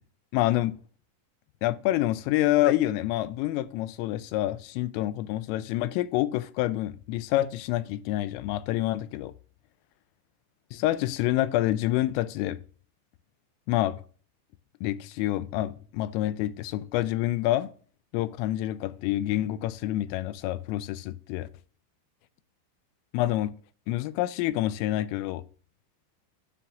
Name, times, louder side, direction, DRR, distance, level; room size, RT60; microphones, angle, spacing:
voice 1, 0.3-0.8 1.6-9.3 10.7-12.6 13.7-14.0 14.8-17.7 18.1-21.5 23.1-23.5 23.9-25.4, left 15 dB, 85° left, 3.2 m, -27 dB
13.5 x 7.8 x 2.5 m
omnidirectional pair, 5.8 m